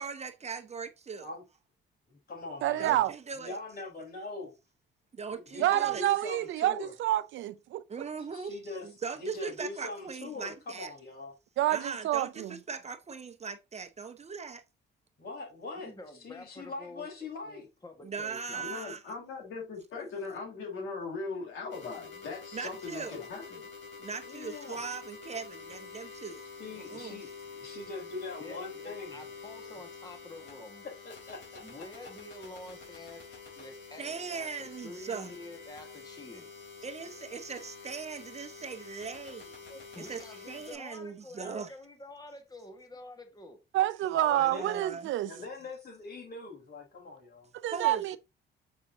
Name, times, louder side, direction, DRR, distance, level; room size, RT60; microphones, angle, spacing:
voice 1, 0.0-1.3 2.8-3.6 5.1-6.0 7.9-10.9 11.7-14.6 18.0-19.0 22.5-23.2 24.0-26.4 26.7-27.2 34.0-35.3 36.8-39.6 40.0-41.7 44.4-45.1 47.7-48.2, right 5 dB, 35° right, 0.8 m, -40 dB
voice 2, 2.1-3.1 3.4-4.5 5.3-6.9 8.2-8.9 9.2-11.3 15.2-17.7 24.2-24.8 26.6-29.3 30.8-32.1 44.1-44.7 45.3-47.5, left 3 dB, 50° left, 3.9 m, -42 dB
voice 3, 2.6-3.1 5.6-7.8 11.6-12.6 43.7-45.3 47.6-48.2, right 14 dB, 75° right, 0.5 m, -28 dB
voice 4, 15.8-17.1 17.5-18.6 28.4-30.9 31.6-33.3 33.6-36.5 39.7-43.6, left 2 dB, 20° left, 1.6 m, -48 dB
voice 5, 18.5-23.6, left 4 dB, 90° left, 2.9 m, -39 dB
sound 1, 21.7-40.7, left 5 dB, 70° left, 3.9 m, -47 dB
7.3 x 5.2 x 2.8 m
cardioid pair, 90°, 20 cm